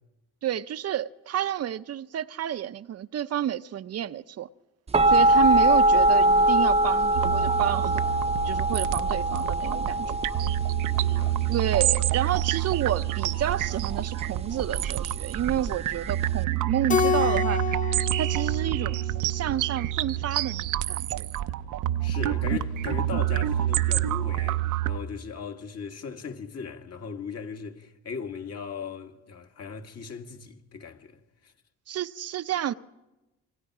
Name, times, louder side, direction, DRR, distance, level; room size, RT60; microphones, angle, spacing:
voice 1, 0.4-4.5 5.1-8.0 8.4-10.2 11.5-17.7 18.2-21.3 31.9-32.7, right 10 dB, 55° right, 0.7 m, -30 dB
sound 1, 4.9-16.4, right 1 dB, 20° right, 0.7 m, -24 dB
sound 2, 7.1-25.0, right 14 dB, 85° right, 0.8 m, -28 dB
voice 2, 10.8-11.6 22.0-31.5, left 6 dB, 55° left, 2.3 m, -38 dB
Keyboard (musical), 16.9-19.5, left 8 dB, 25° left, 0.7 m, -28 dB
27.0 x 24.0 x 4.9 m
cardioid pair, 90°, 30 cm